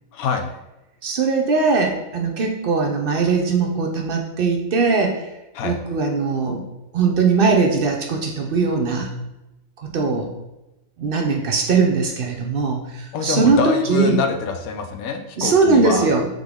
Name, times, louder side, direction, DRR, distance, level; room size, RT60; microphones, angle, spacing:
voice 1, 0.1-0.5 5.5-5.8 13.1-16.1, left 5 dB, 80° left, 5 dB, 1.0 m, -25 dB
voice 2, 1.0-5.2 5.6-6.6 6.9-9.1 9.8-10.3 11.0-14.2 15.4-16.3, right 4 dB, 60° right, 2 dB, 0.6 m, -20 dB
3.7 x 3.5 x 3.5 m, 0.97 s
omnidirectional pair, 1.5 m